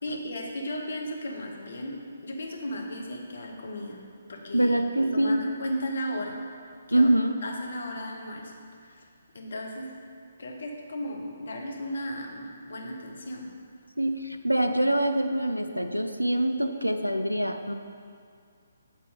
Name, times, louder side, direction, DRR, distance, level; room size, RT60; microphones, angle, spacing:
voice 1, 0.0-4.7 5.1-6.4 6.9-7.1 7.4-8.6 8.9-9.0 9.3-9.9 10.4-13.5, equal, 55° left, 1 dB, 1.0 m, -35 dB
voice 2, 4.5-5.4 6.9-7.4 14.0-17.7, right 1 dB, 90° left, 6 dB, 0.4 m, -24 dB
7.4 x 4.1 x 5.1 m, 2.3 s
figure-of-eight pair, 135°, 0 cm